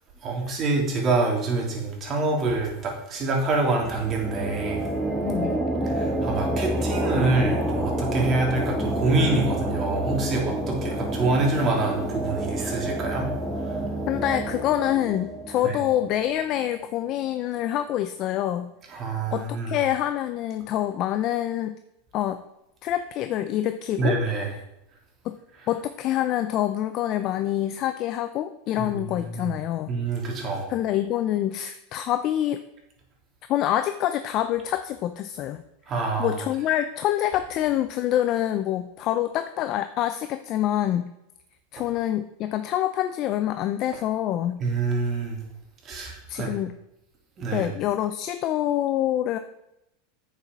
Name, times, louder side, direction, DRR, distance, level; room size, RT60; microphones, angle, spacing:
voice 1, 0.2-4.8 5.9-13.3 15.6-15.7 18.9-19.7 24.0-24.5 28.8-29.5 29.9-30.7 35.9-36.4 44.6-45.4 45.8-46.5 47.4-47.7, right 3 dB, 30° right, -1 dB, 3.4 m, -26 dB
sound 1, 3.8-17.2, right 1 dB, 5° right, 2.0 m, -29 dB
voice 2, 5.2-5.6 14.1-18.7 19.3-21.8 22.1-22.4 22.8-24.2 25.2-25.4 25.7-29.9 30.7-32.6 33.5-35.6 36.2-41.1 41.7-44.6 46.3-46.8 47.5-49.4, left 12 dB, 45° left, 9 dB, 0.6 m, -26 dB
9.1 x 6.9 x 6.1 m, 0.86 s
supercardioid pair, 130°, 0 cm